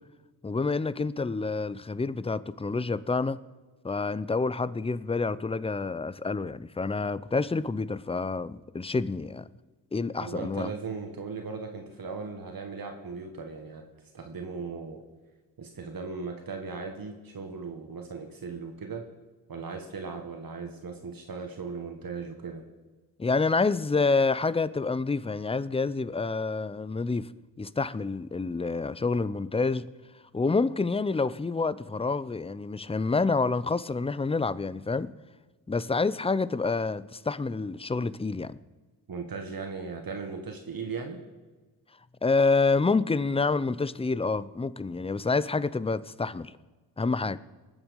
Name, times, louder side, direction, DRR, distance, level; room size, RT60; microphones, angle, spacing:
voice 1, 0.4-3.4 3.8-9.5 9.9-10.7 23.2-27.3 27.6-29.9 30.3-35.1 35.7-38.6 42.2-46.5 47.0-47.4, left 4 dB, 15° left, 0.5 m, -28 dB
voice 2, 10.2-13.8 14.1-15.0 15.6-19.0 19.5-22.6 39.1-41.2, right 4 dB, 50° right, 1.7 m, -37 dB
19.5 x 7.3 x 5.3 m
cardioid pair, 60°, 43 cm